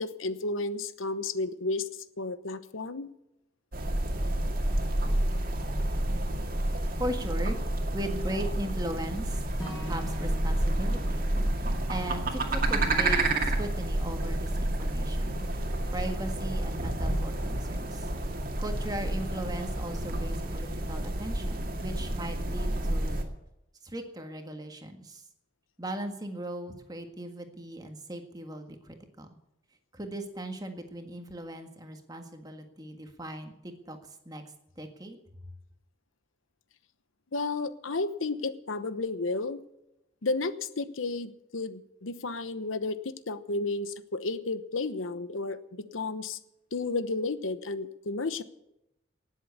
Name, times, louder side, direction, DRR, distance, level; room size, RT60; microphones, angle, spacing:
voice 1, 0.0-1.9 2.2-3.1 37.3-39.6 40.2-46.4 46.7-48.4, left 3 dB, 85° left, 13 dB, 1.0 m, -32 dB
sound 1, 3.7-23.2, right 1 dB, 45° right, 2.2 m, -29 dB
voice 2, 7.0-7.6 7.9-9.4 9.9-11.2 11.9-15.4 15.9-18.1 18.6-23.2 23.8-25.2 25.8-29.4 29.9-34.4 34.8-35.2, right 1 dB, 20° right, 5 dB, 1.7 m, -38 dB
Acoustic guitar / Strum, 9.6-13.9, left 1 dB, 20° left, 5.7 m, -44 dB
18.5 x 7.7 x 8.3 m, 0.85 s
head